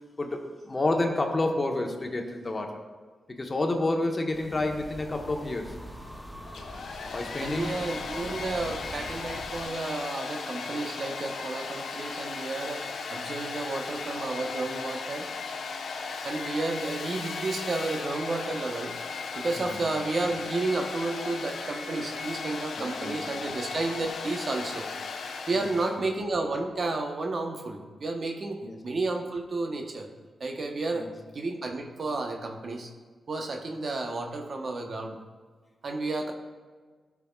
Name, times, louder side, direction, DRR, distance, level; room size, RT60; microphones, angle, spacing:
voice 1, 0.2-2.8 3.4-5.8 7.1-7.8 19.6-19.8 22.8-23.2 25.5-25.7 28.6-28.8 30.9-31.1, left 2 dB, 40° left, 3 dB, 1.1 m, -29 dB
sound 1, 4.3-9.7, equal, ahead, 1.4 m, -43 dB
Domestic sounds home sounds, 6.4-26.0, left 4 dB, 75° left, 0.6 m, -36 dB
voice 2, 7.4-12.8 13.1-15.3 16.2-18.9 19.3-24.9 25.5-28.6 28.8-30.1 30.4-31.1 31.3-32.9 33.3-35.2 35.8-36.3, right 2 dB, 60° right, 3 dB, 1.0 m, -31 dB
13.0 x 6.0 x 2.4 m, 1.4 s
cardioid pair, 50°, 0 cm